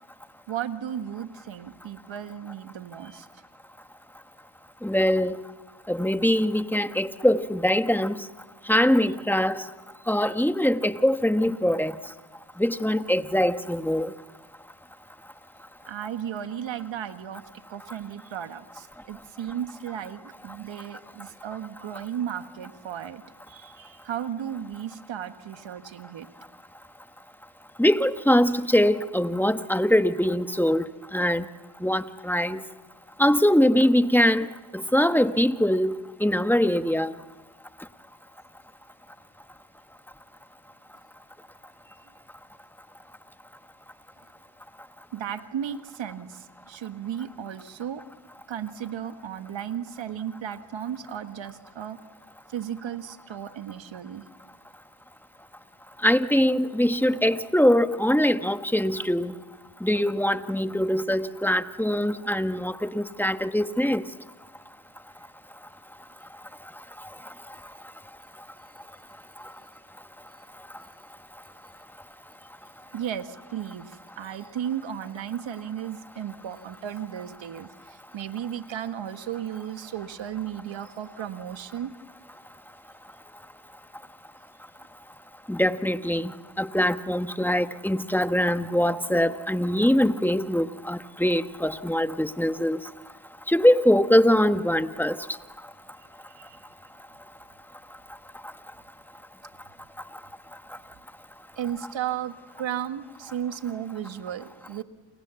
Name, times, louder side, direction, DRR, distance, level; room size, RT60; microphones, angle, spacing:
voice 1, 0.5-3.3 15.9-17.4 17.7-23.2 23.5-26.3 45.1-48.0 48.5-52.0 52.5-54.3 72.9-81.9 96.3-96.6 101.6-104.8, right 9 dB, 80° right, 1.6 m, -35 dB
voice 2, 4.8-5.4 5.9-8.2 8.7-9.6 10.1-11.9 12.6-14.1 27.8-30.8 31.1-31.4 31.8-32.6 33.2-34.5 34.7-35.9 36.2-37.1 56.0-59.3 59.8-64.0 85.5-86.3 86.6-92.8 93.5-95.2, equal, 5° left, 1.3 m, -22 dB
29.0 x 27.5 x 7.0 m
cardioid pair, 50°, 44 cm